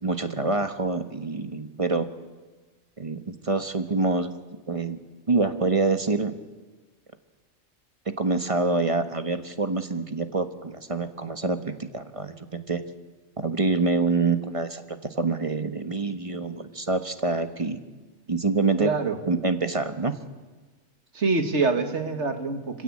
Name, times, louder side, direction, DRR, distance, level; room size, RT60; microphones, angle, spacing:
voice 1, 0.0-2.1 3.0-4.3 4.7-5.0 5.3-6.3 8.2-12.8 13.4-17.8 18.3-18.9 19.3-20.1, right 3 dB, 25° right, 8 dB, 1.2 m, -26 dB
voice 2, 18.8-19.2 21.1-22.8, right 4 dB, 60° right, 7 dB, 2.1 m, -25 dB
25.5 x 16.5 x 8.6 m, 1.3 s
omnidirectional pair, 1.4 m